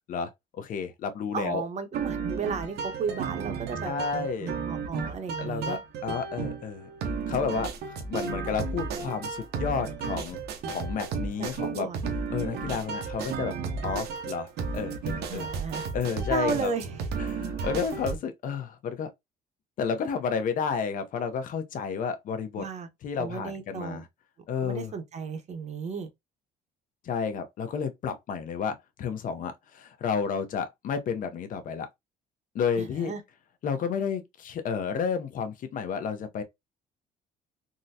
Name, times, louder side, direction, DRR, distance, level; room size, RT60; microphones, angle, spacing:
voice 1, 0.1-1.6 3.8-4.6 5.4-6.9 7.3-7.7 8.0-10.4 10.6-11.9 12.3-13.5 13.8-15.5 15.9-16.7 17.2-19.1 19.8-22.7 23.0-24.1 24.5-24.9 27.0-31.9 32.5-33.1 33.6-36.4, left 6 dB, 50° left, 0.6 m, -31 dB
voice 2, 1.3-5.8 11.4-12.1 12.6-12.8 15.3-15.9 16.3-17.1 22.6-22.9 23.2-24.0 24.6-26.1 32.8-33.2, right 5 dB, 40° right, 0.8 m, -34 dB
sound 1, 1.9-18.2, right 5 dB, 75° right, 0.8 m, -33 dB
3.7 x 2.1 x 2.7 m
cardioid pair, 110°, 17 cm